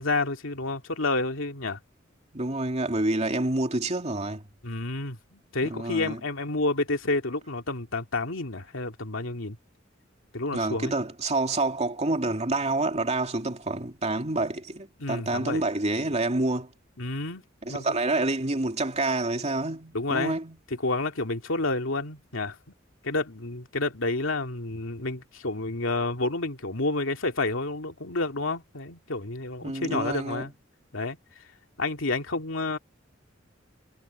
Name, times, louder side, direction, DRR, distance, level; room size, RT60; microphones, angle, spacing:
voice 1, 0.0-1.8 4.6-9.6 10.3-10.9 15.0-15.6 17.0-17.4 17.7-18.0 19.9-20.3 20.8-22.6 23.0-30.5 30.9-31.2 31.8-32.8, left 2 dB, 90° left, 2.4 m, -29 dB
voice 2, 2.3-4.5 5.6-6.2 10.5-16.7 17.6-20.6 29.6-30.5, right 2 dB, 35° right, 2.6 m, -28 dB
head